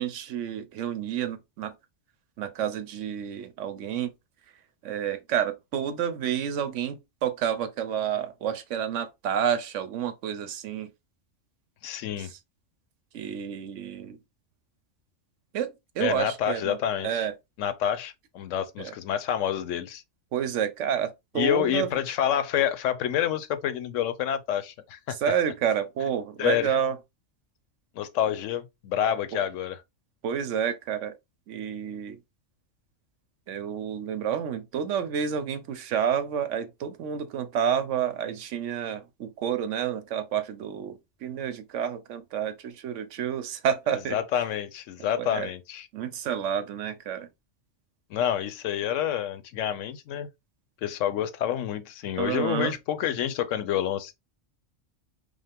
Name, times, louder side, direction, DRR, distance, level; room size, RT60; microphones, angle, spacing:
voice 1, 0.0-1.7 2.4-4.1 4.8-10.9 13.1-14.2 15.5-16.8 17.0-17.3 18.8-18.9 20.3-21.9 25.1-27.0 29.3-29.4 30.2-31.1 31.5-32.2 33.5-44.2 45.2-45.5 45.9-47.3 52.2-52.7, right 8 dB, 85° right, 1.0 m, -29 dB
voice 2, 11.8-12.3 16.0-17.3 17.6-20.0 21.4-25.2 26.4-26.7 27.9-29.8 43.9-45.9 48.1-50.3 50.8-54.1, left 10 dB, 85° left, 1.0 m, -28 dB
5.2 x 2.1 x 3.4 m
omnidirectional pair, 1.3 m